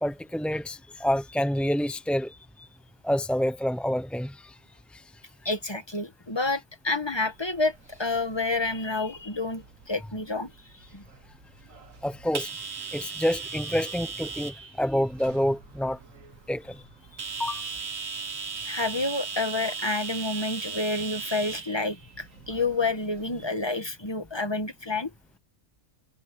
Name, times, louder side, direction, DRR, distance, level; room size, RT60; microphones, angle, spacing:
voice 1, 0.0-2.3 3.0-4.5 4.9-5.0 12.0-16.0 16.5-16.8 17.4-17.6, equal, ahead, 0.3 m, -28 dB
voice 2, 5.4-10.5 10.9-11.0 17.1-17.3 18.6-25.1, left 3 dB, 20° left, 1.6 m, -29 dB
sound 1, 7.3-23.4, right 5 dB, 85° right, 1.9 m, -39 dB
omnidirectional pair, 1.3 m